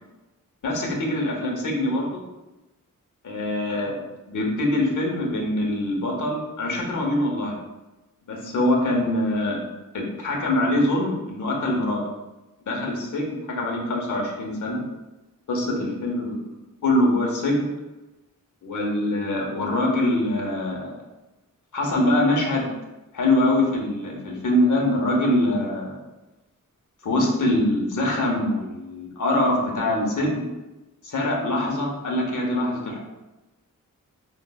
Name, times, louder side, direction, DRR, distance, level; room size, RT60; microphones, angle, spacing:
voice 1, 0.6-2.2 3.2-4.0 4.3-7.6 8.3-9.6 9.9-12.0 12.7-14.8 15.5-16.3 16.8-17.7 18.6-20.9 21.7-22.7 23.1-26.0 27.0-30.4 31.0-33.0, left 1 dB, 65° left, -1 dB, 0.9 m, -24 dB
4.5 x 2.0 x 2.2 m, 1.0 s
cardioid pair, 65°, 33 cm